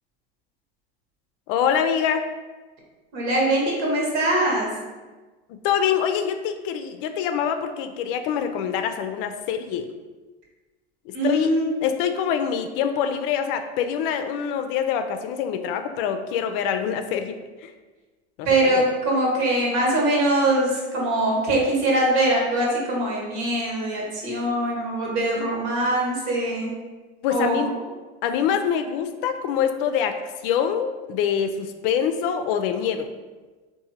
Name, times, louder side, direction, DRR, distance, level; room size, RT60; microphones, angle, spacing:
voice 1, 1.5-2.3 5.5-9.9 11.1-11.5 11.8-17.7 18.4-18.8 27.2-27.7 28.2-30.2 30.4-33.1, left 8 dB, 60° left, 7 dB, 0.4 m, -25 dB
voice 2, 3.1-4.7 11.1-11.7 18.4-26.7 27.3-27.6, right 1 dB, 65° right, -3 dB, 1.4 m, -22 dB
3.7 x 2.6 x 2.8 m, 1.3 s
hypercardioid pair, 90°, 30 cm